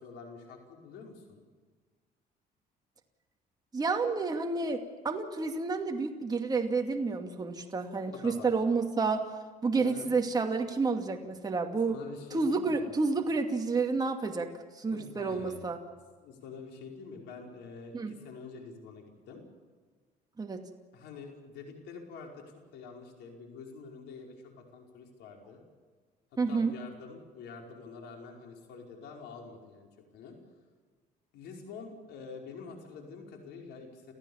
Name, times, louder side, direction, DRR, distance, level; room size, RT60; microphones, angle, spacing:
voice 1, 0.0-1.4 8.1-8.5 9.8-10.1 11.9-12.9 14.9-15.8 16.2-19.4 20.9-25.6 26.5-30.4 31.3-34.1, left 5 dB, 85° left, 2 dB, 5.3 m, -47 dB
voice 2, 3.7-9.3 9.6-12.0 12.3-15.8 17.9-18.1 20.4-20.6 26.4-26.7, right 4 dB, 25° right, 3 dB, 2.4 m, -30 dB
29.5 x 15.0 x 7.2 m, 1.5 s
cardioid pair, 110°, 17 cm